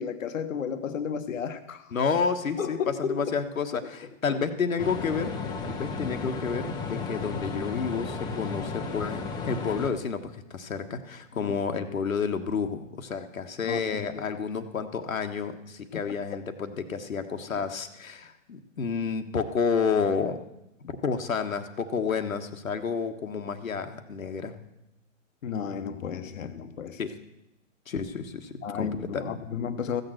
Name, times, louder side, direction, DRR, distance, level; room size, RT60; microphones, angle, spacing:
voice 1, 0.0-2.0 2.6-3.3 3.8-3.9 4.3-4.4 11.3-11.5 13.6-14.3 15.9-16.0 17.6-17.7 20.8-21.0 25.4-27.0 28.6-30.0, left 7 dB, 75° left, 9 dB, 1.2 m, -33 dB
voice 2, 1.9-3.8 4.2-5.4 5.6-20.4 21.0-24.5 27.0-27.1 27.9-29.3, left 5 dB, 90° left, 6 dB, 1.4 m, -30 dB
sound 1, 4.8-9.9, left 4 dB, 10° left, 0.9 m, -34 dB
15.0 x 6.7 x 7.8 m, 0.89 s
hypercardioid pair, 140°, 40 cm